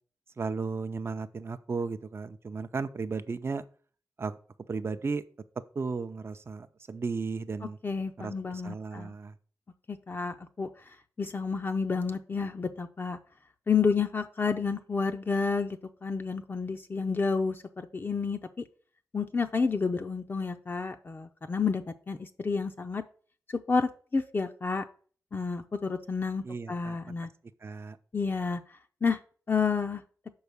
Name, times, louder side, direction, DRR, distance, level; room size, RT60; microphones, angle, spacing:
voice 1, 0.4-3.6 4.2-4.4 4.7-5.2 5.7-7.8 8.2-9.4 26.4-27.1 27.6-28.0, right 4 dB, 40° right, 10 dB, 0.5 m, -35 dB
voice 2, 7.8-9.1 9.9-10.7 11.2-13.2 13.7-18.4 19.1-23.0 23.5-24.8 25.3-27.3 28.1-28.6 29.0-29.2 29.5-30.0, left 5 dB, 35° left, 5 dB, 0.5 m, -30 dB
6.3 x 4.7 x 6.8 m, 0.43 s
wide cardioid pair, 110°, 6 cm